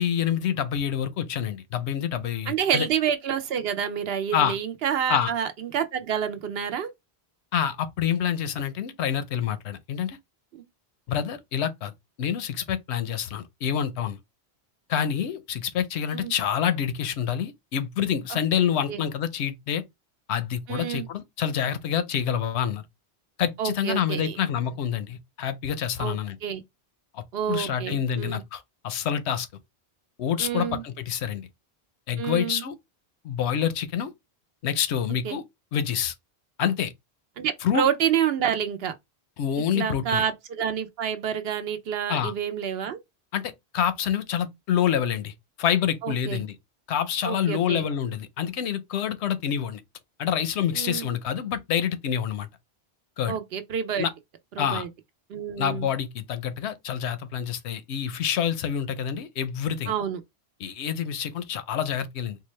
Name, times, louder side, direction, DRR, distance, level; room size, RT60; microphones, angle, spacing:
voice 1, 0.0-2.9 4.3-4.5 5.1-5.3 7.5-10.2 11.1-11.9 12.2-14.2 14.9-19.8 20.3-22.8 23.4-26.4 27.1-29.5 30.2-31.5 32.1-32.7 33.2-34.1 34.6-35.4 35.7-36.1 36.6-36.9 37.6-37.9 39.4-40.2 42.1-42.3 43.3-45.3 45.6-46.5 46.9-49.8 50.2-52.5 53.2-53.4 54.0-54.1 54.6-54.9 55.6-59.9 60.6-62.4, left 9 dB, 85° left, 0.9 m, -27 dB
voice 2, 2.5-6.9 10.5-10.6 16.1-16.3 18.3-18.4 18.9-19.0 20.7-21.1 23.6-24.4 26.0-26.2 26.4-26.6 27.3-28.4 30.4-30.8 32.2-32.6 35.2-35.4 37.4-38.9 39.7-43.0 46.0-46.4 47.2-47.9 50.7-51.1 53.3-54.1 54.6-54.9 55.3-55.9 59.9-60.2, right 8 dB, 70° right, 0.8 m, -28 dB
3.9 x 2.2 x 3.1 m
omnidirectional pair, 1.1 m